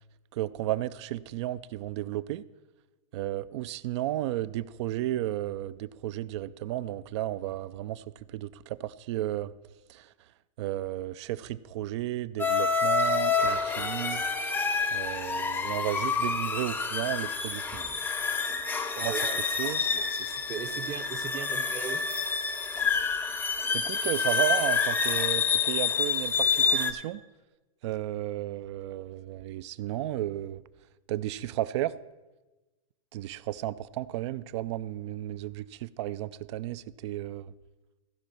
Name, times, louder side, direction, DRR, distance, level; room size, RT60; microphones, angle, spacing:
voice 1, 0.3-2.4 3.1-8.0 8.3-9.5 9.9-10.1 10.6-14.2 14.9-17.9 19.0-19.1 19.6-19.8 23.7-27.2 27.8-30.6 31.1-31.9 33.1-37.5, right 14 dB, 50° right, 18 dB, 0.4 m, -33 dB
sound 1, 12.4-26.9, left 5 dB, 10° left, 0.6 m, -28 dB
voice 2, 19.0-22.0, right 8 dB, 30° right, 10 dB, 0.8 m, -39 dB
15.5 x 5.3 x 5.8 m, 1.2 s
hypercardioid pair, 130°, 18 cm